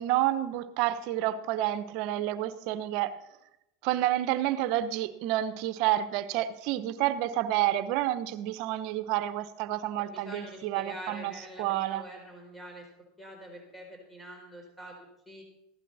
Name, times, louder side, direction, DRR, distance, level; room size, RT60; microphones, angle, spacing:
voice 1, 0.0-3.2 3.8-12.1, right 13 dB, 60° right, 12 dB, 0.9 m, -29 dB
voice 2, 10.1-12.9 13.2-15.4, equal, 10° left, 1 dB, 4.5 m, -45 dB
15.5 x 11.5 x 4.2 m, 0.86 s
hypercardioid pair, 95°, 0 cm